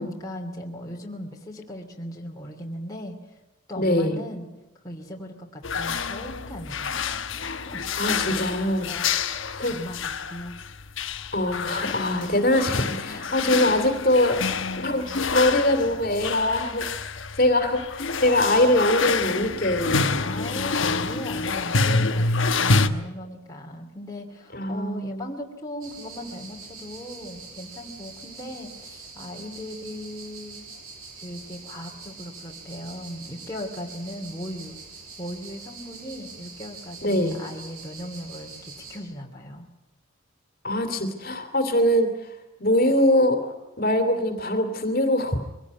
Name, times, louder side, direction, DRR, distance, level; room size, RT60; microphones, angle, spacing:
voice 1, 0.0-3.2 3.7-4.5 4.8-7.2 7.5-7.9 8.9-9.4 9.7-10.6 13.1-13.3 20.2-30.6 31.2-34.8 35.2-39.7, left 1 dB, 15° left, -1 dB, 2.6 m, -38 dB
voice 2, 3.8-4.2 8.0-8.9 9.3-9.7 11.3-17.1 17.4-20.1 24.5-25.3 37.0-37.4 40.6-42.1 42.6-45.4, left 1 dB, 40° left, 6 dB, 2.7 m, -23 dB
sound 1, 5.6-22.9, left 4 dB, 60° left, 1.2 m, -27 dB
sound 2, 25.8-39.0, right 4 dB, 80° right, 7.8 m, -44 dB
23.0 x 17.0 x 9.4 m, 1.0 s
head